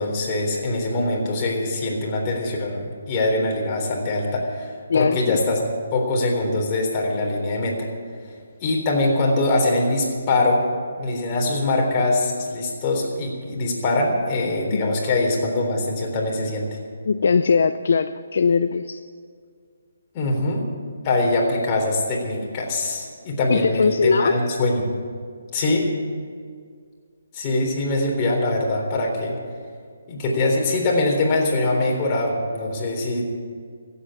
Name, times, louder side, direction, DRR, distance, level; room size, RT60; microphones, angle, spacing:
voice 1, 0.0-7.9 8.6-10.6 11.0-16.7 20.1-20.7 21.0-24.9 25.5-25.9 27.3-29.3 30.1-33.4, left 2 dB, 25° left, -1 dB, 3.8 m, -23 dB
voice 2, 4.9-5.4 14.7-14.9 17.1-19.0 23.5-24.4, left 5 dB, 60° left, 10 dB, 0.6 m, -20 dB
15.5 x 8.6 x 9.9 m, 2.1 s
hypercardioid pair, 155°, 0 cm